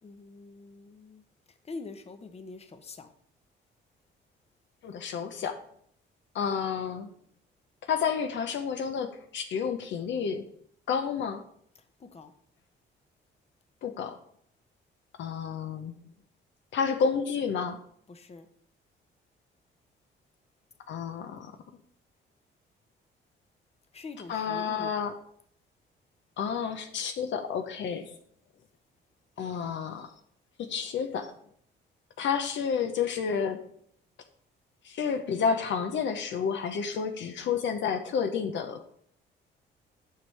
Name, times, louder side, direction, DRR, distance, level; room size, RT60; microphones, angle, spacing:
voice 1, 0.0-1.2 1.6-3.1 12.0-12.3 18.1-18.5 23.9-24.9, left 3 dB, 30° left, 0.9 m, -44 dB
voice 2, 4.8-5.6 6.3-7.1 7.9-10.4 10.9-11.4 13.8-14.2 15.2-15.9 16.7-17.8 20.9-21.5 24.3-25.1 26.4-28.1 29.4-30.1 30.6-31.3 32.2-33.6 34.8-38.8, left 6 dB, 70° left, 0.8 m, -30 dB
9.2 x 5.4 x 3.3 m
cardioid pair, 90°, 20 cm